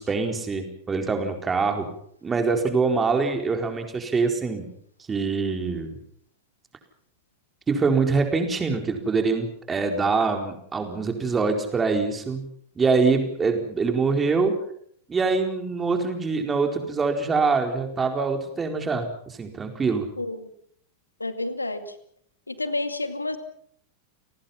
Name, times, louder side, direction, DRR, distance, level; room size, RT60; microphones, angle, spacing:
voice 1, 0.0-1.9 2.2-4.7 5.1-6.0 7.7-12.4 12.8-14.6 15.1-20.1, right 4 dB, 15° right, 5 dB, 4.2 m, -24 dB
voice 2, 20.2-20.5 21.2-21.9 22.5-23.4, left 2 dB, 80° left, 10 dB, 2.1 m, -30 dB
29.5 x 19.0 x 5.8 m, 0.64 s
figure-of-eight pair, 90°, 0 cm